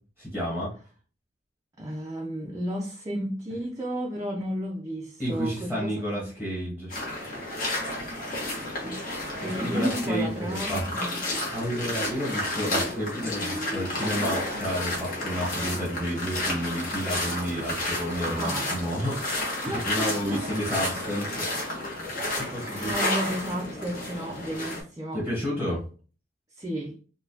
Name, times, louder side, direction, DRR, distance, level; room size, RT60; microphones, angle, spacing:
voice 1, 0.2-0.7 5.2-6.9 7.2-7.4 9.4-10.9 11.5-21.8 22.4-22.9 25.1-25.8, equal, 10° left, 1.1 m, -31 dB
voice 2, 1.8-6.3 8.8-9.0 9.4-11.2 18.4-18.9 19.6-20.5 22.1-25.3 26.6-27.0, right 1 dB, 20° right, 0.5 m, -33 dB
sound 1, 6.9-24.8, left 1 dB, 50° left, 1.2 m, -31 dB
4.0 x 2.2 x 2.7 m
head